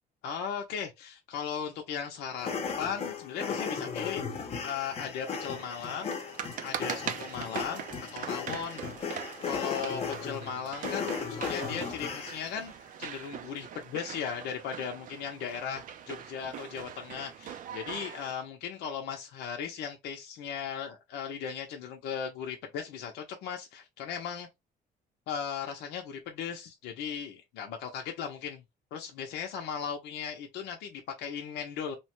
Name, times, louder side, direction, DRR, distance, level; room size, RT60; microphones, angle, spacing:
voice 1, 0.2-2.5 2.8-6.2 6.6-7.8 8.1-8.8 9.5-12.7 13.0-24.5 25.3-28.6 28.9-32.0, left 7 dB, 85° left, 0.7 m, -37 dB
sound 1, 2.4-12.6, left 6 dB, 35° left, 0.8 m, -36 dB
sound 2, 5.2-18.3, right 9 dB, 50° right, 0.5 m, -42 dB
3.0 x 2.2 x 2.9 m
cardioid pair, 110°, 17 cm